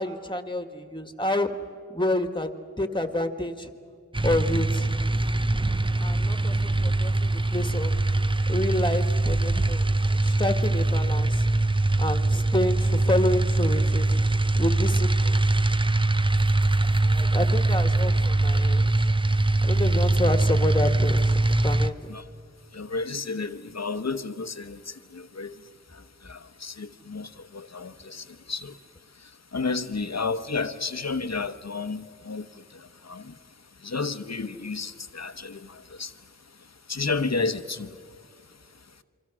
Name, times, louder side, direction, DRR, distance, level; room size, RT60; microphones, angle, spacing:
voice 1, 0.0-1.5 1.9-2.5 2.8-3.7 4.2-4.9 6.0-7.9 8.5-9.9 10.2-11.5 12.0-14.2 14.6-15.4 17.0-18.9 19.6-21.4 21.6-22.1, left 1 dB, 15° left, 1.7 m, -29 dB
sound 1, 4.1-21.9, right 2 dB, 15° right, 0.6 m, -22 dB
voice 2, 22.7-24.8 25.1-25.5 26.2-28.7 29.5-32.5 33.1-33.3 33.8-36.1 36.9-37.9, left 4 dB, 55° left, 1.0 m, -31 dB
27.5 x 24.0 x 6.2 m
wide cardioid pair, 45°, 31 cm